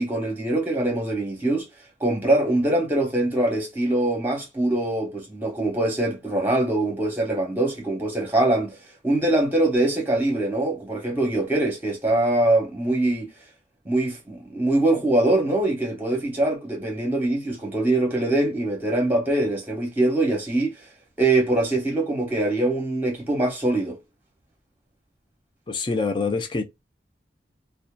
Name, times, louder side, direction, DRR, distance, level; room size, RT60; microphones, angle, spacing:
voice 1, 0.0-1.7 2.0-8.8 9.0-13.3 13.8-20.8 21.2-24.0, right 2 dB, 10° right, 1.0 m, -23 dB
voice 2, 25.7-26.6, left 4 dB, 25° left, 0.4 m, -25 dB
2.7 x 2.2 x 2.2 m
head